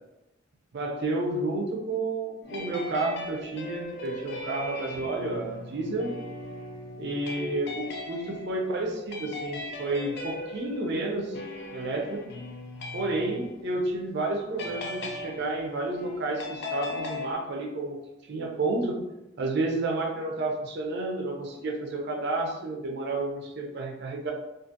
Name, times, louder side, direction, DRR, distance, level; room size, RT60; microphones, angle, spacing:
voice 1, 0.7-6.1 7.0-11.4 11.7-12.4 12.9-18.0 18.3-19.0 19.4-24.3, right 2 dB, 60° right, 0 dB, 0.5 m, -31 dB
sound 1, 2.4-14.0 14.6-17.3, left 2 dB, 60° left, 0.5 m, -39 dB
2.5 x 2.5 x 2.6 m, 0.93 s
head